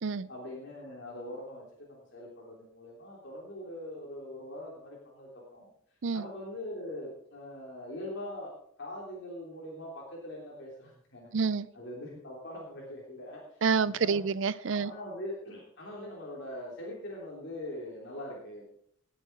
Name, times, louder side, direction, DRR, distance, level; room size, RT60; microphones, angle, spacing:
voice 1, 0.3-5.7 6.1-8.5 8.8-11.3 11.7-14.2 14.6-18.6, left 1 dB, 55° left, -4 dB, 3.2 m, -42 dB
voice 2, 11.3-11.7 13.6-14.9, right 5 dB, 60° right, 19 dB, 0.5 m, -28 dB
19.0 x 8.0 x 4.6 m, 0.67 s
head